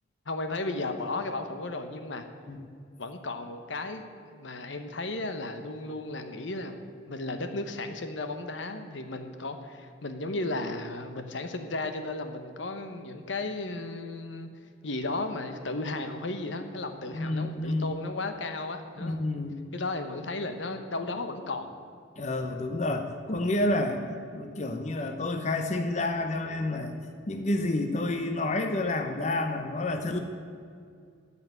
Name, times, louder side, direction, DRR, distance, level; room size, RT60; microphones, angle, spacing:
voice 1, 0.3-2.2 3.0-14.5 14.8-19.2 19.7-21.7, left 2 dB, 75° left, 7 dB, 1.0 m, -34 dB
voice 2, 17.1-18.0 19.0-19.6 22.2-24.0 24.3-26.9 27.3-30.2, left 2 dB, 40° left, 6 dB, 0.8 m, -29 dB
13.5 x 5.8 x 9.5 m, 2.3 s
head